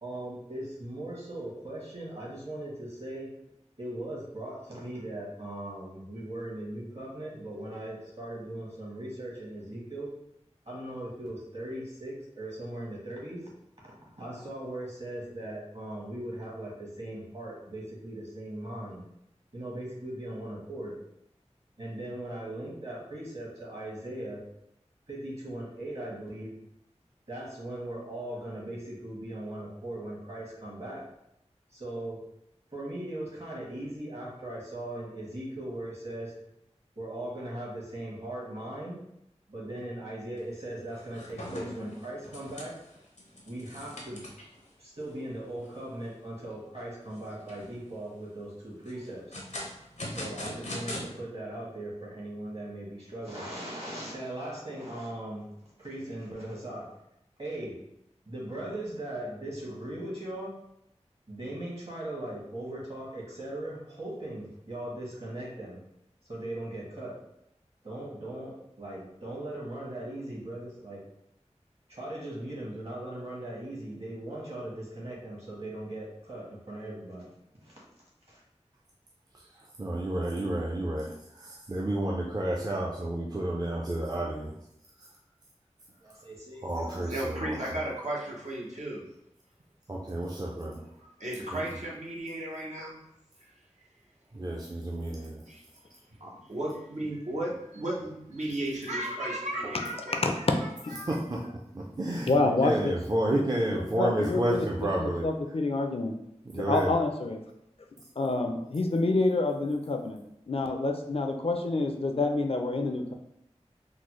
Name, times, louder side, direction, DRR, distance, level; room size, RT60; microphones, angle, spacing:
voice 1, 0.0-3.4 3.8-10.1 10.6-13.5 13.8-19.0 19.5-21.0 21.8-24.4 25.1-26.5 27.3-31.0 31.7-32.2 32.7-36.3 36.9-39.0 39.5-42.7 43.4-44.2 44.8-49.2 50.1-55.5 55.8-56.9 57.4-57.8 58.3-60.6 61.3-65.8 66.3-67.2 67.8-71.0 71.9-77.3 77.6-77.8 78.3-78.4 86.0-87.1, right 1 dB, 55° right, -5 dB, 1.5 m, -39 dB
sound 1, 40.4-40.6 40.9-44.6 45.1-45.2 45.6-45.7 46.2-46.6 47.2-47.8 48.9-51.0, left 1 dB, 80° left, 0.7 m, -41 dB
voice 2, 79.8-81.1 81.7-84.5 86.6-87.5 89.9-90.8 91.5-91.6 94.3-95.4 101.1-101.4 101.7-102.3 102.6-105.2 106.5-106.9, right 1 dB, 35° right, -3 dB, 0.4 m, -30 dB
voice 3, 86.9-89.0 91.0-93.0 95.5-95.6 96.2-100.4 100.9-101.5, right 1 dB, 75° right, -4 dB, 0.8 m, -35 dB
voice 4, 100.2-100.5 100.8-101.0 102.2-102.9 103.3-103.4 103.7-106.1 106.5-107.4 108.2-110.2 110.5-113.1, left 2 dB, 55° left, 4 dB, 0.4 m, -28 dB
3.8 x 2.0 x 3.1 m, 0.80 s
wide cardioid pair, 45°, 12 cm